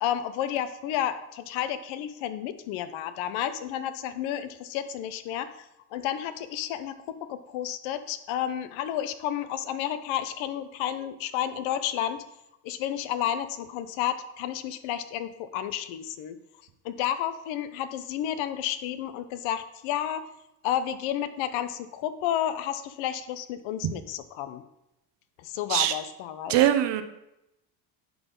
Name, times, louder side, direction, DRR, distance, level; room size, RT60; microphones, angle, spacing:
voice 1, 0.0-12.2 12.6-16.4 16.8-20.3 20.6-24.6 25.4-26.6, left 10 dB, 75° left, 12 dB, 0.9 m, -31 dB
voice 2, 26.5-27.0, right 12 dB, 60° right, 10 dB, 1.0 m, -21 dB
10.5 x 3.9 x 5.3 m, 0.87 s
supercardioid pair, 85°, 47 cm